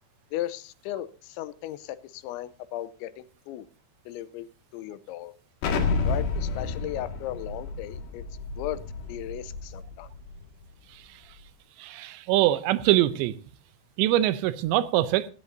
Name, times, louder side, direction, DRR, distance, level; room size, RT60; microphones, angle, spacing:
voice 1, 0.3-3.7 4.1-4.5 4.7-5.3 6.0-8.2 8.6-8.8 9.1-10.1, left 13 dB, 85° left, 3.1 m, -36 dB
Explosion, 5.6-10.3, left 4 dB, 70° left, 4.0 m, -30 dB
voice 2, 11.8-13.4 14.0-15.3, right 14 dB, 80° right, 2.9 m, -23 dB
16.5 x 15.5 x 2.7 m
omnidirectional pair, 5.2 m